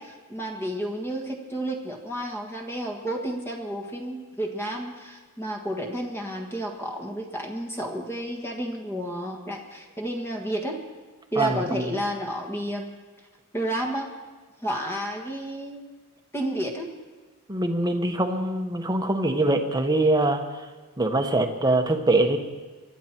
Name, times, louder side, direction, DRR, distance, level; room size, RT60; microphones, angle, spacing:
voice 1, 0.0-10.8 11.3-12.9 13.5-14.1 14.6-16.0 16.3-16.9, right 1 dB, 10° left, 1 dB, 1.6 m, -31 dB
voice 2, 11.4-11.9 17.5-20.6 21.0-22.4, right 2 dB, 20° right, 5 dB, 1.2 m, -23 dB
23.0 x 11.5 x 4.5 m, 1.4 s
head